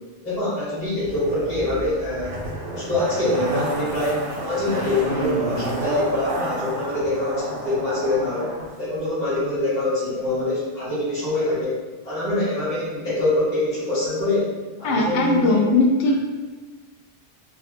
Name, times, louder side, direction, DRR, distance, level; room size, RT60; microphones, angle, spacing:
voice 1, 0.2-2.4 2.7-14.5 14.8-15.6, left 2 dB, 40° left, -12 dB, 1.3 m, -25 dB
Zipper (clothing), 1.0-8.7 8.9-9.0, right 1 dB, 80° right, 1.0 m, -30 dB
voice 2, 14.8-16.2, left 2 dB, 85° left, 0 dB, 1.0 m, -19 dB
3.6 x 2.3 x 2.5 m, 1.3 s
omnidirectional pair, 1.2 m